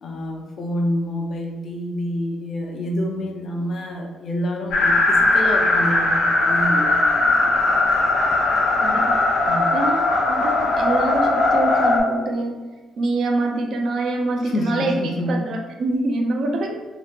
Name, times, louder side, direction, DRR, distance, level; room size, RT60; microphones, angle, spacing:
voice 1, 0.0-7.6 9.4-9.7 14.4-15.4, left 1 dB, 50° left, 1 dB, 0.5 m, -27 dB
sound 1, 4.7-12.0, left 2 dB, 70° left, 0.8 m, -19 dB
voice 2, 8.8-9.2 9.7-16.8, right 2 dB, 50° right, 2 dB, 0.5 m, -25 dB
2.9 x 2.8 x 3.4 m, 1.2 s
cardioid pair, 145°, 0 cm